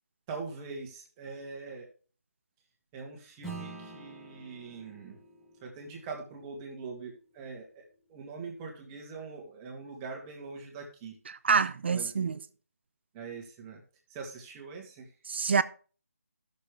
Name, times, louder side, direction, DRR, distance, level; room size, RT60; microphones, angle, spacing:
voice 1, 0.3-1.9 2.9-5.2 5.6-7.8 8.1-11.2 11.9-12.3 13.1-13.8 14.1-15.1, right 4 dB, 15° right, 1.8 m, -42 dB
Acoustic guitar / Strum, 3.4-8.2, right 3 dB, 5° left, 1.4 m, -48 dB
voice 2, 11.3-12.4 15.3-15.6, right 5 dB, 45° right, 0.6 m, -26 dB
14.5 x 6.7 x 3.4 m
figure-of-eight pair, 155°, 8 cm